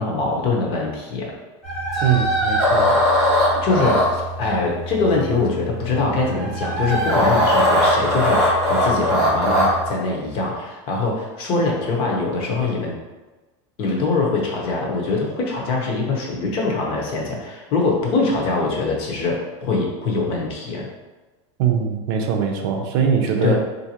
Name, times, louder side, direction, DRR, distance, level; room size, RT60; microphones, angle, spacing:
voice 1, 0.0-1.3 3.6-12.9 13.8-20.9 23.4-23.6, left 3 dB, 40° left, -1 dB, 0.8 m, -23 dB
sound 1, 1.6-9.9, equal, ahead, 0.8 m, -20 dB
voice 2, 2.0-3.0 21.6-23.6, right 7 dB, 60° right, 2 dB, 0.5 m, -21 dB
3.7 x 2.6 x 2.9 m, 1.2 s
supercardioid pair, 160°, 15 cm